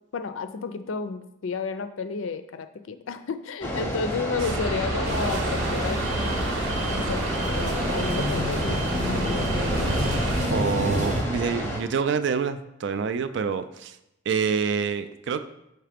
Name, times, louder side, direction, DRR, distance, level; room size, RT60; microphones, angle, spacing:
voice 1, 0.1-9.5, left 5 dB, 70° left, 10 dB, 0.4 m, -32 dB
sound 1, 3.6-11.8, equal, 10° left, 0.7 m, -31 dB
sound 2, 4.4-10.5, right 2 dB, 80° right, 0.8 m, -30 dB
sound 3, 5.0-11.2, equal, 35° right, 0.7 m, -29 dB
voice 2, 10.5-14.0 14.3-15.4, right 6 dB, 55° right, 11 dB, 0.3 m, -27 dB
5.8 x 3.2 x 5.0 m, 0.86 s
head